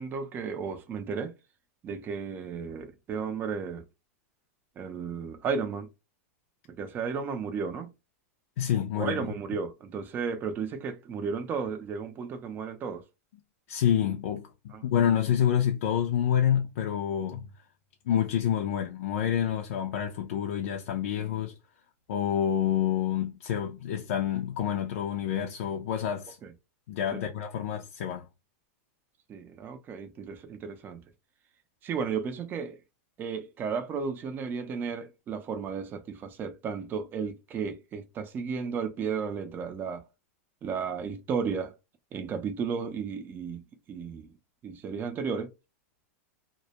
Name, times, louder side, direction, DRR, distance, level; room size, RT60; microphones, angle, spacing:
voice 1, 0.0-1.3 1.8-3.8 4.8-5.9 6.7-7.9 8.9-13.0 14.7-14.8 26.4-26.5 27.1-27.2 29.3-31.0 31.8-32.8 33.2-40.0 40.6-41.7 42.1-43.6 43.9-44.3 44.6-45.5, right 6 dB, 25° right, 0.4 m, -34 dB
voice 2, 8.6-9.2 13.7-14.5 14.8-17.4 18.1-21.5 22.1-26.4 26.9-28.3, left 9 dB, 70° left, 0.4 m, -28 dB
2.1 x 2.0 x 2.8 m
hypercardioid pair, 130°, 8 cm